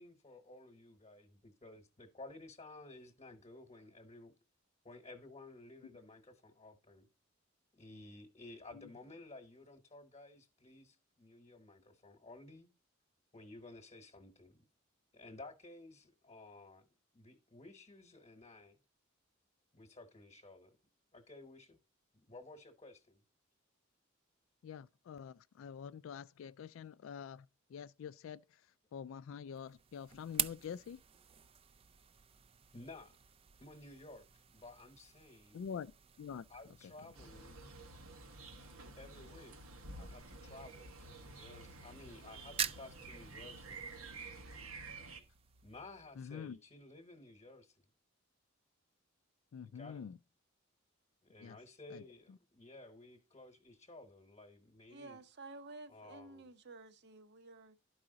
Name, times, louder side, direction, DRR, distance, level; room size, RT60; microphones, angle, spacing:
voice 1, 0.0-4.3 4.8-7.1 7.7-12.7 13.3-14.6 15.1-16.8 17.1-18.8 19.7-20.8 21.1-21.8 22.1-23.2 32.7-33.2 33.6-35.6 36.5-37.6 39.0-39.6 40.0-43.8 45.6-47.8 49.6-50.0 51.2-55.2 55.9-56.5, left 2 dB, 30° left, 1.1 m, -54 dB
voice 2, 24.6-28.6 28.9-31.0 35.5-35.9 36.2-36.4 46.2-46.6 49.5-50.2 51.4-51.6 51.9-52.0 52.3-52.4, left 7 dB, 70° left, 0.3 m, -46 dB
sound 1, 29.5-46.5, right 9 dB, 30° right, 0.4 m, -47 dB
sound 2, 37.1-45.2, right 3 dB, 85° right, 1.3 m, -51 dB
voice 3, 54.9-57.8, right 2 dB, 55° right, 0.8 m, -52 dB
12.0 x 4.8 x 3.8 m
head